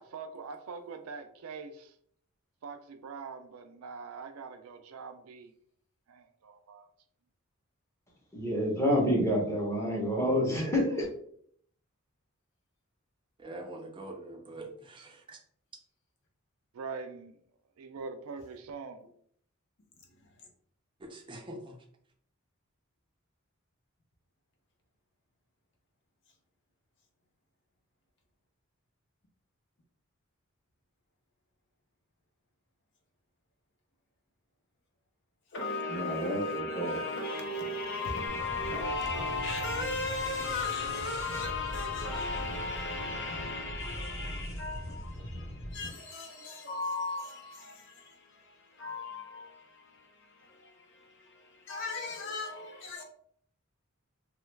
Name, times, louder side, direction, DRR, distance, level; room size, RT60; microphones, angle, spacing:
voice 1, 0.1-1.9 2.6-5.5 6.1-6.9 16.7-17.4 17.8-19.0, right 4 dB, 85° right, 0.4 m, -43 dB
voice 2, 8.3-11.1 35.9-37.0, equal, 15° left, 0.8 m, -28 dB
voice 3, 13.4-15.4 21.0-21.8, right 1 dB, 25° right, 0.5 m, -44 dB
voice 4, 20.2-20.5 35.5-53.0, left 3 dB, 60° left, 0.7 m, -36 dB
sound 1, 38.3-45.9, equal, 80° left, 1.2 m, -41 dB
3.0 x 2.3 x 3.1 m
head